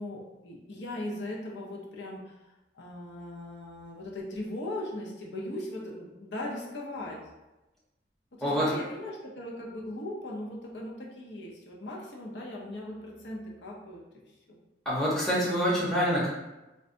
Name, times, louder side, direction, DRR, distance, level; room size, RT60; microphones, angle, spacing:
voice 1, 0.0-2.4 2.7-7.2 8.4-14.0 14.5-14.6, left 1 dB, 75° left, -2 dB, 0.6 m, -38 dB
voice 2, 8.4-8.7 14.9-16.3, equal, ahead, -8 dB, 0.7 m, -26 dB
3.9 x 2.2 x 2.5 m, 1.0 s
head